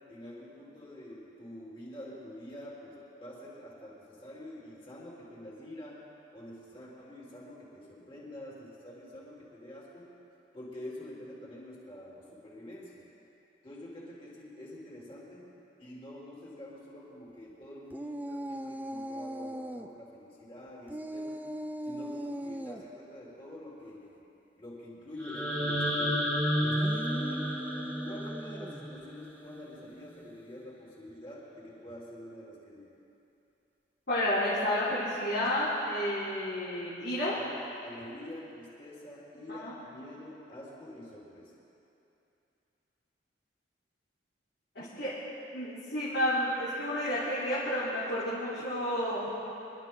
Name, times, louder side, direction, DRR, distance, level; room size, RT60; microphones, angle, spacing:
voice 1, 0.1-6.0 6.3-10.1 10.5-13.0 13.6-15.5 15.8-21.4 21.8-24.2 24.6-27.6 28.0-32.9 37.3-41.5, left 1 dB, 30° left, -6 dB, 3.8 m, -47 dB
sound 1, 17.9-19.9 20.9-22.8 26.6-28.9, equal, 10° right, 0.4 m, -39 dB
sound 2, 25.2-29.2, equal, 10° left, 1.6 m, -31 dB
voice 2, 34.1-37.4 39.5-39.7 44.8-45.1 45.5-49.3, left 1 dB, 65° left, -11 dB, 3.6 m, -31 dB
25.5 x 12.5 x 3.9 m, 2.8 s
head